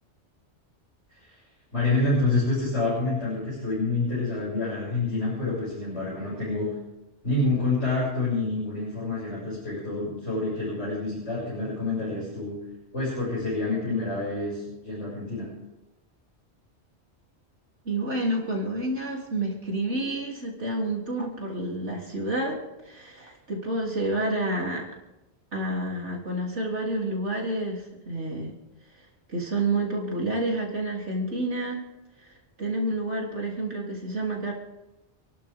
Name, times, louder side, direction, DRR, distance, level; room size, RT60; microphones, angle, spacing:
voice 1, 1.7-6.7 7.2-12.6 12.9-15.5, left 2 dB, 85° left, -7 dB, 7.2 m, -27 dB
voice 2, 17.9-24.9 25.5-28.5 29.3-31.8 32.6-34.5, right 1 dB, 80° right, -2 dB, 3.6 m, -29 dB
29.5 x 12.0 x 3.6 m, 0.99 s
omnidirectional pair, 1.2 m